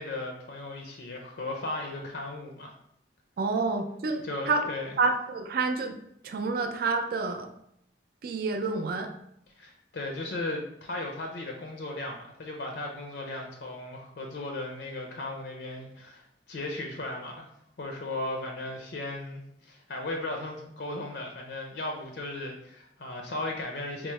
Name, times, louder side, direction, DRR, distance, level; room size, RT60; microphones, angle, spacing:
voice 1, 0.0-2.7 4.2-4.9 9.5-17.5 17.8-24.1, left 2 dB, 70° left, 2 dB, 0.5 m, -36 dB
voice 2, 3.4-4.7 5.0-6.0 6.2-7.5 8.2-9.1, right 3 dB, 55° right, 5 dB, 0.4 m, -28 dB
4.4 x 2.0 x 3.1 m, 0.74 s
head